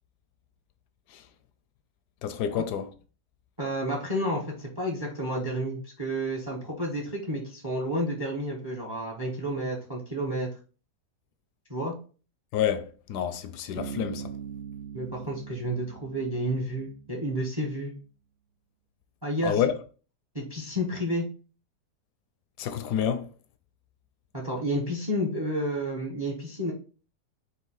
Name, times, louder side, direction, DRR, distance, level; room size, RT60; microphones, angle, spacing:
voice 1, 2.2-2.9 12.5-14.3 19.4-19.7 22.6-23.3, left 9 dB, 80° left, 1.1 m, -28 dB
voice 2, 3.6-10.5 11.7-11.9 14.9-17.9 19.2-19.6 20.3-21.2 24.3-26.7, equal, 20° right, 0.7 m, -30 dB
Bass guitar, 13.8-17.4, right 7 dB, 85° right, 0.6 m, -41 dB
4.3 x 2.6 x 3.9 m
omnidirectional pair, 1.7 m